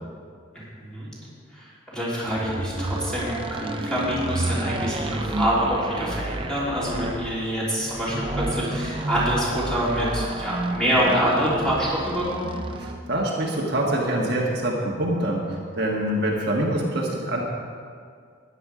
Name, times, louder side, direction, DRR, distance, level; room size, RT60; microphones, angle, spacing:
voice 1, 0.6-1.1 1.5-12.5, equal, 5° left, -8 dB, 3.5 m, -26 dB
sound 1, 2.3-13.1, right 1 dB, 25° right, 0.6 m, -30 dB
voice 2, 12.8-17.4, right 1 dB, 55° right, -2 dB, 1.5 m, -25 dB
13.0 x 10.0 x 4.9 m, 2.1 s
head